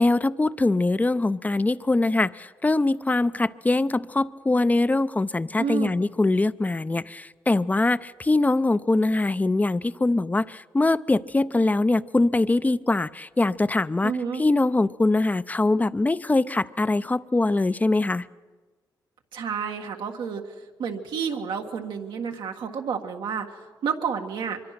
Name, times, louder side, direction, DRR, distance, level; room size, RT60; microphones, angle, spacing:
voice 1, 0.0-14.1 14.4-18.3, left 2 dB, 20° left, 0.6 m, -23 dB
voice 2, 5.6-5.9 14.0-14.4 19.3-24.6, right 6 dB, 90° right, 1.7 m, -30 dB
25.0 x 23.0 x 5.9 m
cardioid pair, 65°, 8 cm